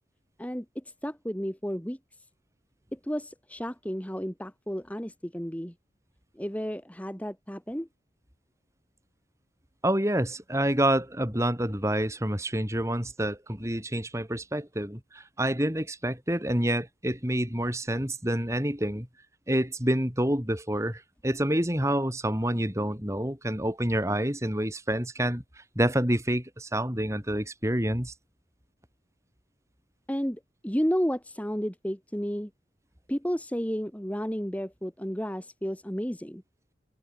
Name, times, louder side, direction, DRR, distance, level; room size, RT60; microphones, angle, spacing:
voice 1, 0.4-2.0 2.9-5.7 6.4-7.9 30.1-32.5 33.1-36.4, equal, 10° left, 2.1 m, -32 dB
voice 2, 9.8-19.1 19.5-25.4 25.8-28.1, right 1 dB, 15° right, 4.1 m, -28 dB
head